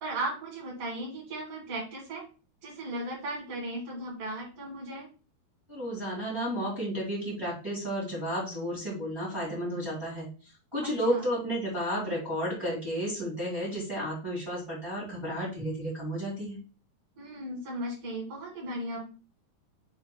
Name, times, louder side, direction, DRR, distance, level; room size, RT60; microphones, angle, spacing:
voice 1, 0.0-2.2 2.6-5.1 10.8-11.3 17.2-19.0, right 1 dB, 45° right, -3 dB, 2.2 m, -36 dB
voice 2, 5.7-10.3 10.7-16.6, equal, 25° right, -6 dB, 0.5 m, -32 dB
6.5 x 3.1 x 2.2 m, 0.36 s
omnidirectional pair, 4.7 m